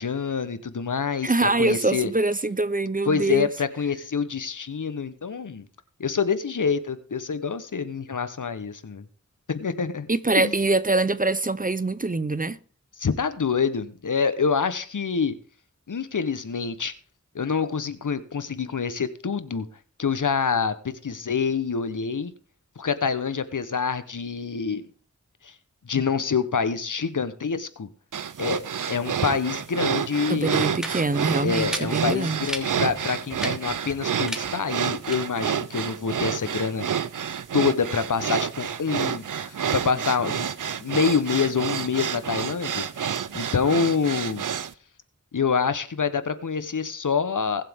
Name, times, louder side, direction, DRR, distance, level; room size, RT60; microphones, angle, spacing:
voice 1, 0.0-2.1 3.1-5.6 6.0-9.0 9.5-10.1 10.4-10.5 13.0-15.4 15.9-16.9 17.3-19.7 20.0-22.3 22.8-24.8 25.4-25.5 25.8-27.9 28.4-30.8 31.4-37.1 37.5-40.5 40.8-44.4 45.3-47.7, left 5 dB, 80° left, 1.0 m, -26 dB
voice 2, 1.2-3.5 10.1-12.6 30.3-32.5, right 2 dB, 25° right, 0.7 m, -24 dB
sound 1, 28.1-44.7, right 8 dB, 85° right, 0.6 m, -29 dB
sound 2, 30.8-39.2, equal, ahead, 2.3 m, -38 dB
20.5 x 7.6 x 3.6 m
wide cardioid pair, 55°, 31 cm